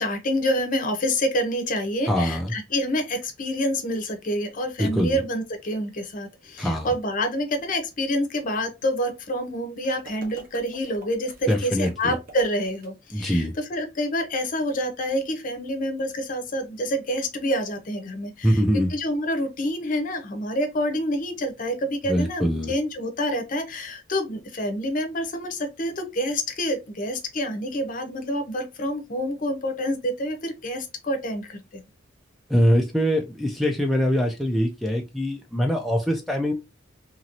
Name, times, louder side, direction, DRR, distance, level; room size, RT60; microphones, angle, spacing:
voice 1, 0.0-18.6 18.9-31.8, equal, 45° left, 0.7 m, -27 dB
voice 2, 2.1-2.5 4.8-5.2 6.6-6.9 11.5-12.2 13.1-13.5 18.4-18.9 22.1-22.7 32.5-36.5, equal, ahead, 0.3 m, -23 dB
sound 1, 9.8-12.9, right 2 dB, 45° right, 0.9 m, -46 dB
2.9 x 2.6 x 2.9 m
head